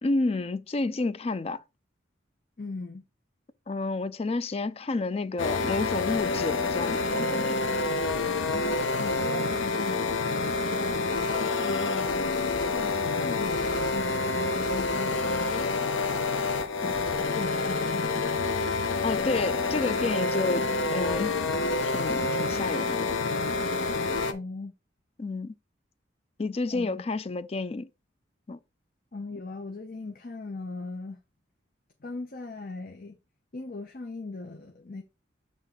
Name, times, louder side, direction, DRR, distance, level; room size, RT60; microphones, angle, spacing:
voice 1, 0.0-1.6 3.7-7.6 19.0-21.4 21.8-23.2 25.2-25.5 26.4-27.9 28.5-28.6, left 3 dB, 30° left, 0.4 m, -30 dB
voice 2, 2.6-3.0 8.5-12.2 12.7-15.7 16.8-17.0 17.3-18.3 24.3-24.7 26.7-27.0 29.1-31.2 32.0-33.2 33.5-35.0, left 3 dB, 45° left, 0.7 m, -39 dB
sound 1, 5.4-24.3, left 3 dB, 80° left, 0.8 m, -28 dB
7.4 x 3.6 x 3.8 m
head